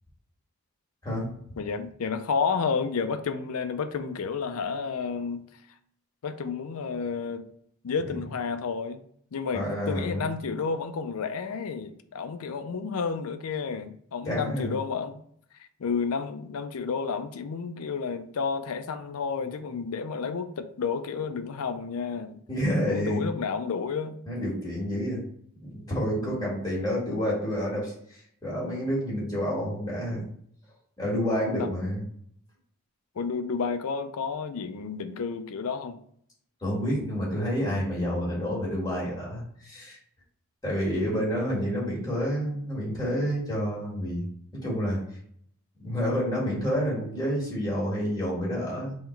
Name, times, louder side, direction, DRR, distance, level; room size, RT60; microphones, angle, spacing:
voice 1, 1.6-5.5 6.2-7.5 7.8-9.0 9.3-15.2 15.8-22.4 22.8-24.2 26.2-26.6 31.6-31.7 33.2-36.0, left 5 dB, 75° left, 9 dB, 0.5 m, -31 dB
voice 2, 9.5-10.2 14.3-14.7 22.5-23.3 24.3-25.2 25.6-30.3 31.0-32.0 36.6-40.0 40.6-44.3 44.5-45.0 45.8-49.0, equal, 15° left, -6 dB, 1.7 m, -29 dB
3.8 x 3.1 x 4.5 m, 0.65 s
head